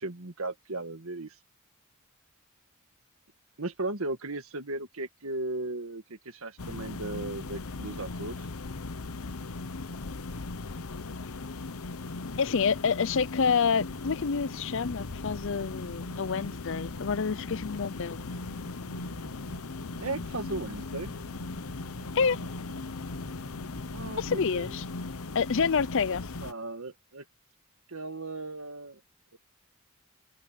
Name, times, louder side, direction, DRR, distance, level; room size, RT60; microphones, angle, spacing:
voice 1, 0.0-1.4 3.6-8.5 20.0-21.1 23.9-24.8 26.4-27.3 27.9-29.0 29.3-29.4, right 2 dB, 75° right, 1.8 m, -36 dB
sound 1, 6.6-26.5, left 3 dB, 90° left, 1.0 m, -38 dB
voice 2, 12.4-18.3 22.1-22.4 24.2-24.8 25.3-26.2, left 5 dB, 60° left, 0.6 m, -28 dB
sound 2, 13.6-24.1, right 1 dB, 60° right, 1.8 m, -52 dB
open air
head